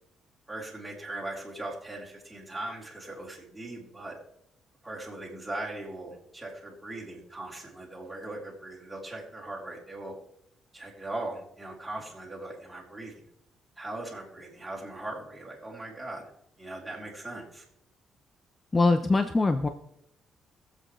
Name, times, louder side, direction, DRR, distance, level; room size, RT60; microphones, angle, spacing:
voice 1, 0.5-4.2 4.8-10.2 10.7-13.2 13.8-16.3 16.6-17.6, right 2 dB, 10° right, -5 dB, 3.6 m, -39 dB
voice 2, 18.7-19.7, left 3 dB, 25° left, 8 dB, 0.7 m, -22 dB
22.5 x 7.8 x 3.2 m, 0.75 s
cardioid pair, 90°, 0 cm